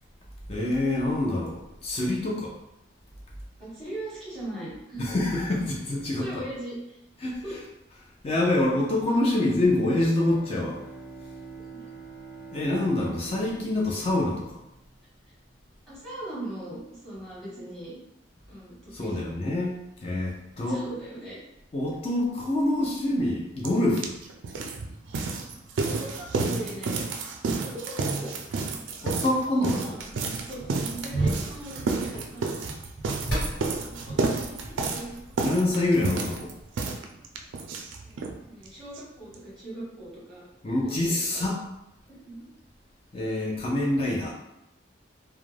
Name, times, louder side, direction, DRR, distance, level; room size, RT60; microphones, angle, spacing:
voice 1, 0.5-2.5 5.0-6.2 7.2-7.4 8.2-10.8 12.5-14.5 18.9-20.8 21.7-24.1 29.0-29.7 35.4-36.5 40.6-41.6 43.1-44.3, left 1 dB, 30° left, -3 dB, 0.4 m, -26 dB
voice 2, 3.6-5.1 6.2-7.0 7.4-7.6 11.7-11.8 15.9-17.9 18.5-19.4 20.6-21.4 25.8-27.1 27.6-28.4 29.2-32.6 33.6-35.1 38.0-41.4 42.2-42.4, right 1 dB, ahead, -9 dB, 1.1 m, -40 dB
Bowed string instrument, 9.8-15.3, right 4 dB, 15° right, 0.6 m, -46 dB
sound 1, 23.6-23.7 24.0-38.4 38.6-38.7 38.9-39.0 39.3-39.4, right 4 dB, 75° right, 0.3 m, -30 dB
sound 2, 30.0-36.8, right 1 dB, 65° left, 1.5 m, -35 dB
2.4 x 2.1 x 3.2 m, 0.87 s
head